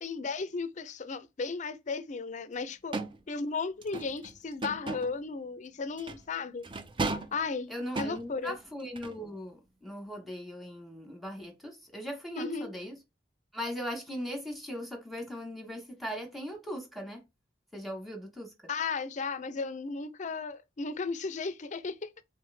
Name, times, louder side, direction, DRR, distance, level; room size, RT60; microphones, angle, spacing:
voice 1, 0.0-3.0 3.3-6.7 7.3-8.6 12.4-12.7 18.7-22.1, left 4 dB, 45° left, 0.5 m, -35 dB
sound 1, 2.9-3.2 3.8-5.2 6.0-6.2 6.6-7.4 8.0-8.5 9.0-9.2, right 3 dB, 30° right, 0.5 m, -35 dB
voice 2, 7.7-12.9 13.5-17.2 17.7-18.5, equal, ahead, 1.2 m, -39 dB
3.8 x 3.1 x 3.3 m
head